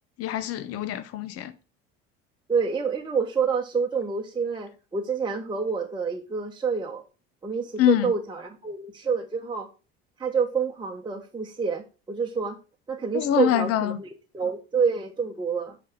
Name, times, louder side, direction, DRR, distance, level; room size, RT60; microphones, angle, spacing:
voice 1, 0.2-1.5 7.8-8.1 13.1-14.0, left 12 dB, 50° left, 0.8 m, -24 dB
voice 2, 2.5-7.0 7.4-9.7 10.2-12.6 12.9-15.8, right 5 dB, 15° right, 1.0 m, -28 dB
8.6 x 3.5 x 5.1 m
hypercardioid pair, 70°, 31 cm